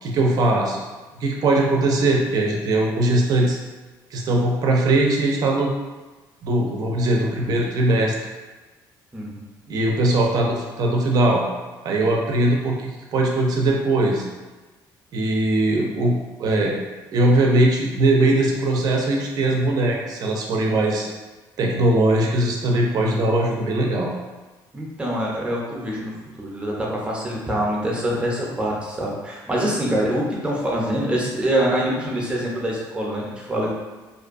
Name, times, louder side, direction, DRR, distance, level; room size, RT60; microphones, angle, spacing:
voice 1, 0.0-0.8 1.2-3.6 4.1-5.7 6.4-8.1 9.7-11.4 11.8-14.3 15.1-16.8 17.1-21.1 21.6-24.1, right 2 dB, 55° right, 0 dB, 0.5 m, -20 dB
voice 2, 9.1-9.4 24.7-33.7, right 1 dB, 15° right, -3 dB, 0.6 m, -25 dB
2.5 x 2.2 x 2.5 m, 1.2 s
cardioid pair, 115°, 8 cm